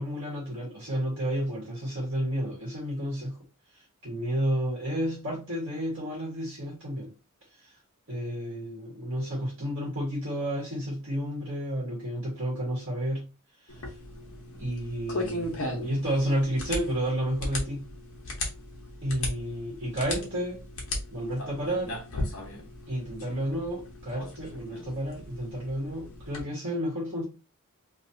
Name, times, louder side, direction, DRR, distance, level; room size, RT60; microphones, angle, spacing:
voice 1, 0.0-3.4 3.7-7.1 7.6-7.7 8.1-13.2 13.6-13.9 14.6-17.8 19.0-20.6 21.1-22.0 22.9-27.2, equal, 55° right, 1.3 m, -31 dB
sound 1, 13.7-26.4, left 1 dB, 65° left, 1.0 m, -37 dB
2.9 x 2.7 x 2.7 m
head